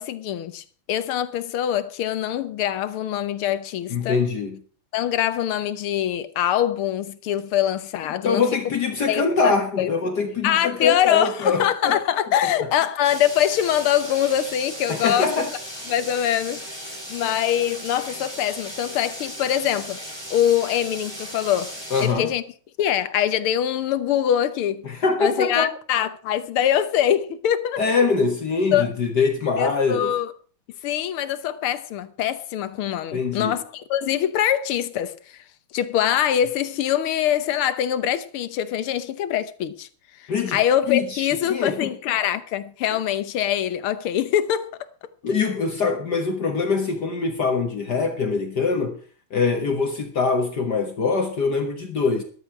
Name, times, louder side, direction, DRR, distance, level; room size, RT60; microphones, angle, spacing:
voice 1, 0.0-4.2 4.9-8.5 9.1-9.9 10.4-15.3 15.9-16.6 17.1-20.0 20.3-22.4 22.8-24.8 25.2-27.8 28.7-28.9 29.6-30.3 30.8-35.4 35.7-39.9 40.2-44.7, left 10 dB, 85° left, 1.8 m, -23 dB
voice 2, 3.9-4.6 8.2-12.0 14.9-15.5 21.9-22.3 24.8-25.7 27.8-30.1 33.1-33.6 40.3-40.6 40.9-41.9 45.2-49.0 49.3-52.2, left 4 dB, 55° left, 1.9 m, -23 dB
sound 1, 13.0-22.1, equal, 10° right, 3.7 m, -36 dB
13.5 x 12.0 x 4.7 m
omnidirectional pair, 2.3 m